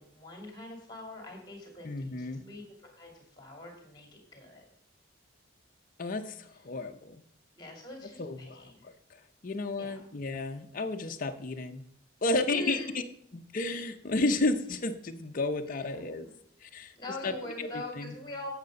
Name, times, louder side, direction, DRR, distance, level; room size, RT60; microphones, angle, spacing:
voice 1, 0.0-4.6 7.6-8.9 9.8-10.0 12.5-13.0 15.7-15.9 17.0-18.5, left 1 dB, 20° left, 1 dB, 2.5 m, -43 dB
voice 2, 1.8-2.4 6.0-7.2 8.2-11.9 12.2-12.8 13.3-16.3 16.6-16.9 17.2-18.1, left 2 dB, 45° left, 5 dB, 0.6 m, -32 dB
8.1 x 7.5 x 5.2 m, 0.65 s
head